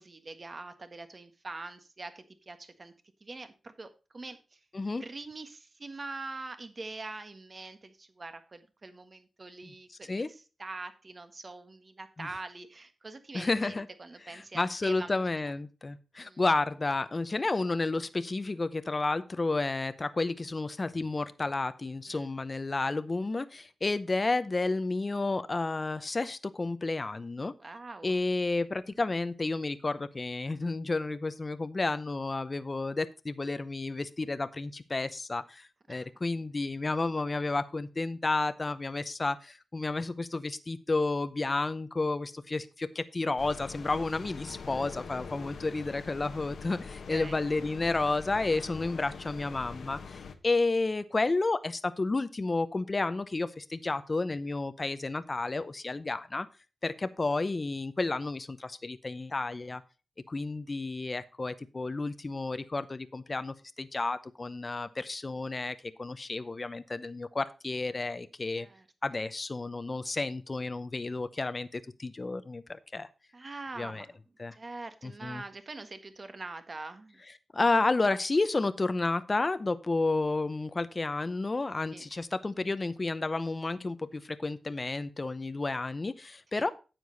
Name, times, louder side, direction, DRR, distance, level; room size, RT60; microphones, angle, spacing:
voice 1, 0.0-2.9 3.2-4.6 5.0-15.4 16.2-16.4 22.1-22.3 27.6-28.1 35.9-36.1 47.1-47.4 68.5-68.9 73.3-74.2 74.5-77.2 81.9-82.1 86.5-86.7, right 3 dB, 40° right, 9 dB, 1.4 m, -44 dB
voice 2, 13.3-13.9 14.3-27.5 28.0-50.2 50.4-56.5 56.8-59.8 60.3-68.7 69.0-73.1 73.8-74.1 74.4-74.6 75.0-75.4 77.5-86.7, left 3 dB, 35° left, 12 dB, 0.7 m, -31 dB
sound 1, 43.4-50.3, left 5 dB, 80° left, 1.1 m, -43 dB
9.6 x 7.7 x 3.9 m, 0.32 s
cardioid pair, 80°, 0 cm